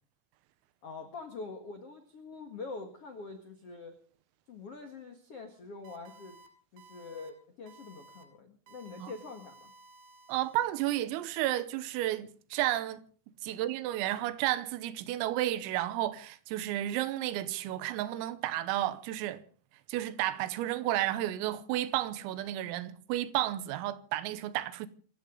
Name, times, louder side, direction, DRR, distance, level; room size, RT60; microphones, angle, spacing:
voice 1, 0.8-3.9 4.5-6.4 6.7-9.7, left 4 dB, 80° left, 1.3 m, -45 dB
sound 1, 5.8-6.5 6.8-7.3 7.7-8.2 8.7-11.0, right 3 dB, 70° right, 4.7 m, -56 dB
voice 2, 10.3-13.0 13.4-19.4 19.9-24.9, right 14 dB, 90° right, 3.7 m, -32 dB
26.5 x 14.0 x 3.9 m
omnidirectional pair, 5.9 m